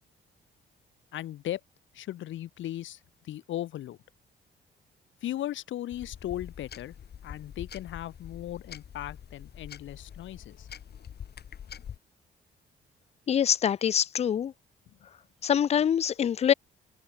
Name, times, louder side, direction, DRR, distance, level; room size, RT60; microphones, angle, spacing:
voice 1, 1.1-1.6 1.9-3.0 3.2-4.0 5.2-6.9 7.2-10.7, left 13 dB, 75° left, 1.6 m, -37 dB
sound 1, 5.9-12.0, left 8 dB, 55° left, 2.6 m, -45 dB
voice 2, 13.3-14.5 15.4-16.5, left 9 dB, 35° left, 0.4 m, -24 dB
open air
cardioid pair, 90°, 20 cm